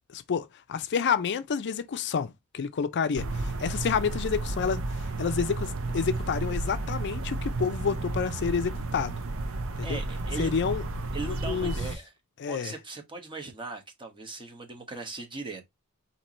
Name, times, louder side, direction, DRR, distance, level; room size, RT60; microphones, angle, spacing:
voice 1, 0.1-4.8 5.2-9.2 9.8-10.0 10.4-10.8 11.5-11.7 12.4-12.7, left 6 dB, 55° left, 0.4 m, -29 dB
sound 1, 3.1-12.0, right 2 dB, 65° right, 0.7 m, -32 dB
voice 2, 9.8-10.6 11.1-12.1 12.5-15.6, right 2 dB, 20° right, 1.1 m, -39 dB
4.5 x 2.8 x 4.1 m
head